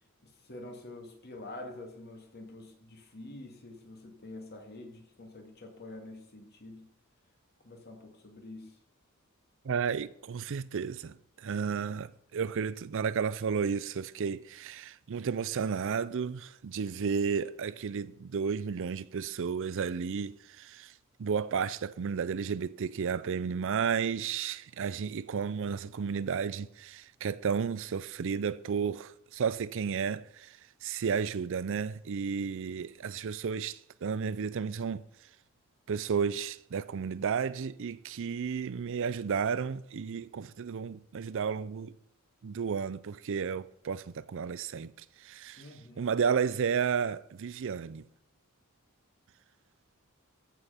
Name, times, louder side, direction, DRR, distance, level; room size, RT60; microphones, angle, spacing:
voice 1, 0.2-6.9 7.6-8.8 45.6-46.1, left 2 dB, 50° left, 2.4 m, -47 dB
voice 2, 9.6-20.9 21.2-35.0 35.9-42.0 42.4-44.9 45.2-45.6 46.0-48.1, right 6 dB, 60° right, 0.5 m, -32 dB
14.5 x 5.6 x 5.7 m
head